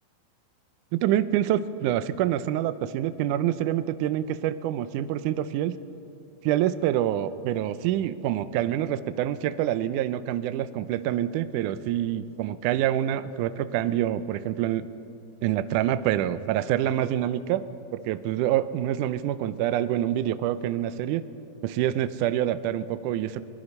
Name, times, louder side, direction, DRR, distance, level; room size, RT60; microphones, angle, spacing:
voice 1, 0.9-5.8 6.4-14.9 15.4-17.6 17.9-21.2 21.6-23.4, right 12 dB, 85° right, 13 dB, 1.8 m, -26 dB
23.0 x 20.5 x 5.4 m, 2.9 s
omnidirectional pair, 4.3 m